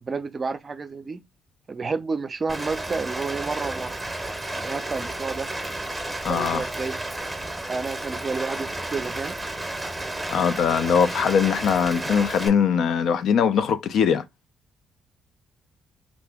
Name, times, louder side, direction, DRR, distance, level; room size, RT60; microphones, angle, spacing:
voice 1, 0.0-1.2 1.7-4.0 4.6-5.5 6.3-7.0 7.7-9.4, right 4 dB, 35° right, 0.4 m, -30 dB
Rain, 2.5-12.5, right 1 dB, 10° right, 0.7 m, -32 dB
voice 2, 6.2-6.6 10.3-14.2, left 7 dB, 70° left, 0.4 m, -21 dB
2.7 x 2.5 x 3.4 m
cardioid pair, 90°, 0 cm